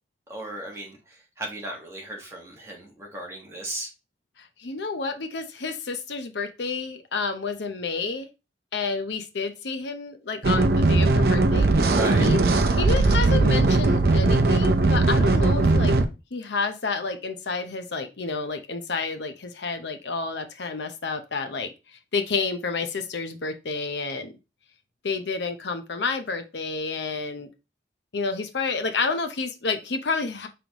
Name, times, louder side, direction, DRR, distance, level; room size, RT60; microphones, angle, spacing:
voice 1, 0.3-1.0 1.4-3.9 11.9-12.2, right 1 dB, 15° right, -1 dB, 1.3 m, -35 dB
voice 2, 4.4-8.3 8.7-11.9 12.2-12.4 12.7-15.9 16.3-21.7 22.1-24.3 25.0-27.5 28.1-30.5, left 4 dB, 75° left, 7 dB, 0.7 m, -30 dB
sound 1, 10.4-16.1, right 2 dB, 55° right, 0.6 m, -19 dB
5.3 x 3.4 x 2.9 m, 0.27 s
head